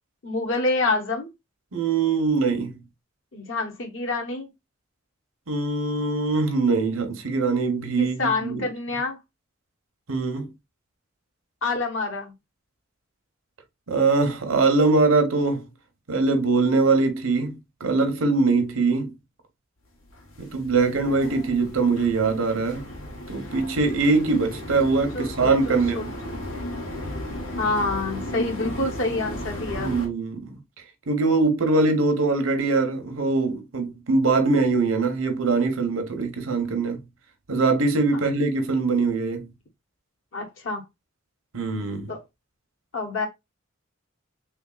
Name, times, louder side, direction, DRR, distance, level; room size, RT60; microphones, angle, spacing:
voice 1, 0.2-1.3 3.3-4.5 8.0-9.2 11.6-12.3 24.9-26.0 27.6-29.9 40.3-40.8 42.1-42.2 42.9-43.3, left 3 dB, 70° left, 0.9 m, -27 dB
voice 2, 1.7-2.8 5.5-8.7 10.1-10.5 13.9-15.6 16.1-19.1 20.4-22.8 23.3-26.1 29.7-30.6 31.1-37.0 37.5-39.5 41.5-42.1, right 3 dB, 80° right, 0.9 m, -22 dB
sound 1, 20.1-30.1, left 1 dB, 90° left, 1.4 m, -35 dB
3.5 x 3.4 x 2.3 m
head